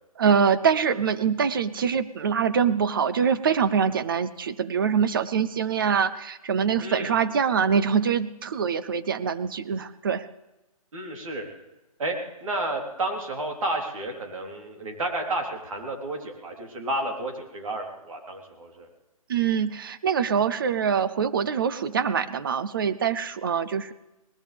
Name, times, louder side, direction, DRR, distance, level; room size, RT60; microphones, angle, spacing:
voice 1, 0.2-10.3 19.3-23.9, right 7 dB, 35° right, 14 dB, 0.5 m, -24 dB
voice 2, 6.8-7.1 10.9-11.5 12.0-18.9, right 1 dB, 60° right, 1 dB, 3.6 m, -31 dB
21.0 x 19.5 x 3.5 m, 0.99 s
hypercardioid pair, 165°, 19 cm